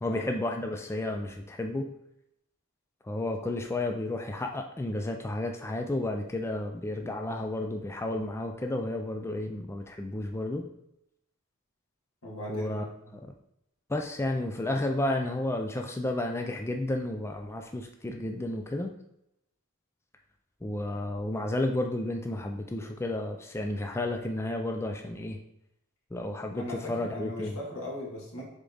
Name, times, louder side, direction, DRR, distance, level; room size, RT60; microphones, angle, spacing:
voice 1, 0.0-2.0 3.0-10.7 12.5-12.9 13.1-13.3 13.9-18.9 20.6-25.4 26.1-27.6, left 1 dB, 10° left, 4 dB, 0.4 m, -32 dB
voice 2, 12.2-13.1 26.5-28.5, left 1 dB, 85° left, -3 dB, 2.0 m, -39 dB
6.6 x 3.7 x 3.9 m, 0.81 s
head